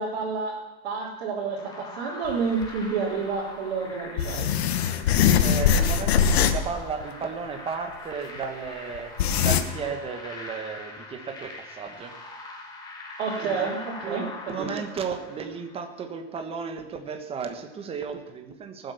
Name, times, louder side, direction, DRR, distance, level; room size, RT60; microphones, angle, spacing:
voice 1, 0.0-4.5 13.2-14.7, right 5 dB, 80° right, -5 dB, 3.7 m, -29 dB
sound 1, 1.5-15.9, left 2 dB, 15° left, 2.5 m, -42 dB
sound 2, 2.3-2.4 2.6-2.7 4.2-6.7 7.0-7.1 8.4-8.5 8.9-9.6, left 8 dB, 90° left, 1.4 m, -21 dB
voice 2, 5.2-9.1 9.4-12.1 13.4-13.7 14.0-18.9, right 6 dB, 20° right, 6 dB, 1.4 m, -34 dB
19.0 x 7.9 x 7.1 m, 1.1 s
supercardioid pair, 155°, 30 cm